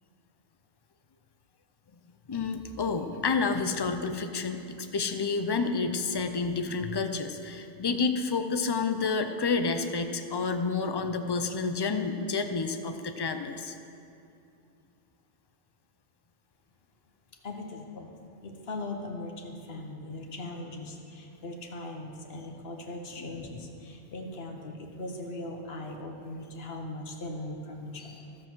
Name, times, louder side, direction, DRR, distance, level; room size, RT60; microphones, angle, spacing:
voice 1, 2.3-13.8 23.2-23.5, left 4 dB, 35° left, 7 dB, 0.4 m, -29 dB
voice 2, 17.4-18.1 18.4-28.1, left 2 dB, 60° left, 2 dB, 1.4 m, -39 dB
13.0 x 7.5 x 6.2 m, 2.6 s
omnidirectional pair, 1.1 m